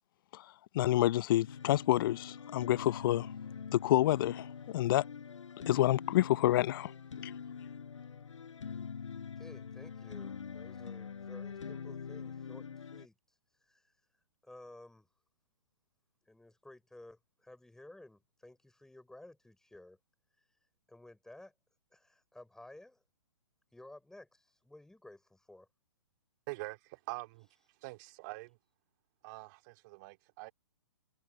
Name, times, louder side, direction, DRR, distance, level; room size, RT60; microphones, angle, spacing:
voice 1, 0.7-3.3 3.7-5.0 5.7-6.9 7.2-7.3, left 14 dB, 45° left, 0.6 m, -28 dB
sound 1, 1.4-13.1, left 6 dB, 75° left, 6.2 m, -44 dB
voice 2, 9.4-13.1 13.6-13.9 14.4-15.1 16.2-20.0 20.9-21.5 21.9-23.0 23.7-25.7, left 1 dB, 5° left, 5.8 m, -54 dB
voice 3, 26.5-27.5 27.8-28.6 29.2-30.5, right 24 dB, 35° right, 2.7 m, -44 dB
hypercardioid pair, 130°, 16 cm